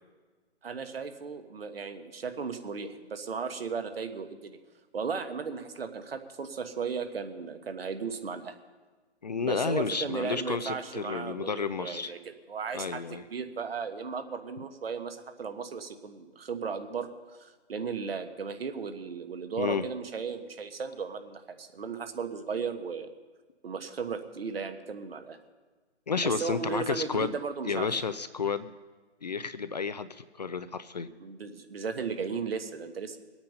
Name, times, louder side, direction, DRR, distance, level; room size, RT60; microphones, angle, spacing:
voice 1, 0.6-4.6 4.9-8.5 9.4-23.1 23.6-25.4 26.2-27.9 31.2-33.2, right 5 dB, 60° right, 8 dB, 1.4 m, -36 dB
voice 2, 9.2-12.1 12.7-13.2 19.6-19.8 26.1-27.4 27.7-28.7 29.2-31.1, left 5 dB, 40° left, 13 dB, 0.5 m, -31 dB
21.0 x 8.8 x 5.5 m, 1.4 s
figure-of-eight pair, 145°, 34 cm